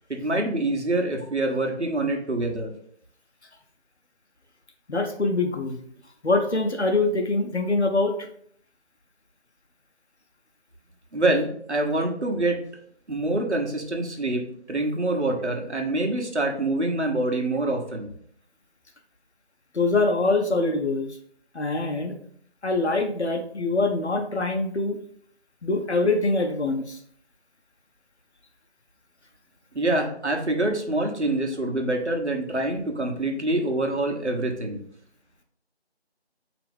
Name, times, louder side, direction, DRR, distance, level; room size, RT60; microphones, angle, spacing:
voice 1, 0.2-2.7 11.1-12.6 13.1-18.1 29.7-34.8, right 2 dB, 90° right, 2 dB, 1.2 m, -25 dB
voice 2, 4.9-5.8 6.2-8.1 19.7-21.1 21.5-22.1 22.6-25.0 25.6-27.0, left 3 dB, 80° left, 4 dB, 0.9 m, -24 dB
4.9 x 3.0 x 3.5 m, 0.63 s
figure-of-eight pair, 180°, 33 cm